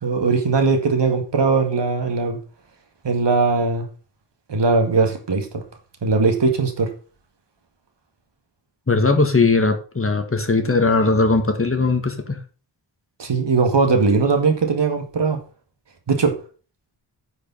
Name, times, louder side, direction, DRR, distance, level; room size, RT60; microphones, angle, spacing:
voice 1, 0.0-2.4 3.0-3.9 4.5-5.6 6.0-6.9 13.2-15.4 16.1-16.4, right 4 dB, 70° right, 2.2 m, -19 dB
voice 2, 8.9-12.4, left 3 dB, 30° left, 1.8 m, -19 dB
9.7 x 5.5 x 5.5 m
wide cardioid pair, 120°, 43 cm